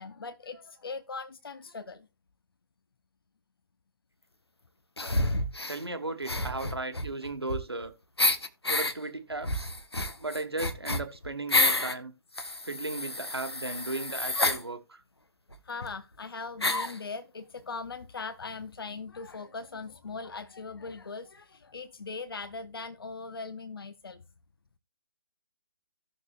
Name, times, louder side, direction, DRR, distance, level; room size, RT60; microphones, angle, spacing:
voice 1, 0.0-2.1 5.0-5.2 9.9-10.2 15.6-24.2, left 4 dB, 65° left, 0.8 m, -40 dB
sound 1, 5.0-5.8 6.2-7.8 8.2-8.9 9.4-12.0 12.3-14.6 15.5-15.6 15.8-15.9 16.6-17.0, left 2 dB, 85° left, 1.1 m, -29 dB
voice 2, 5.7-7.9 8.6-9.7 10.2-12.1 12.6-15.0, right 2 dB, 80° right, 1.5 m, -36 dB
16.5 x 6.7 x 2.5 m
figure-of-eight pair, 135°, 13 cm